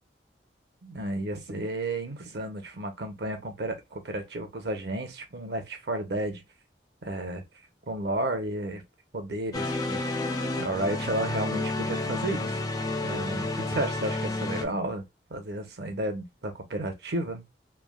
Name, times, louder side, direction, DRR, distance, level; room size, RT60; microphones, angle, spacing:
voice 1, 0.8-6.4 7.0-7.4 7.9-8.8 9.1-10.0 10.6-12.6 13.0-15.0 15.3-17.4, right 1 dB, 65° right, 0.7 m, -32 dB
sound 1, 9.5-14.6, left 2 dB, 20° left, 0.3 m, -30 dB
3.3 x 2.0 x 2.3 m
head